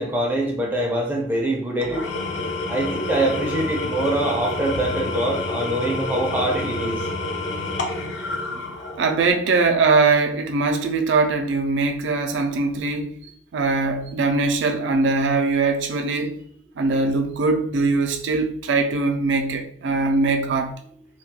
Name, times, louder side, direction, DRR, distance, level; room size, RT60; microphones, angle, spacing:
voice 1, 0.0-2.1 2.7-7.1, right 1 dB, 10° right, 0.4 m, -24 dB
Engine / Tools, 1.8-9.3, left 2 dB, 85° left, 0.5 m, -28 dB
voice 2, 9.0-13.1 13.5-16.4 16.8-20.8, right 3 dB, 75° right, 0.3 m, -21 dB
2.3 x 2.2 x 2.7 m
head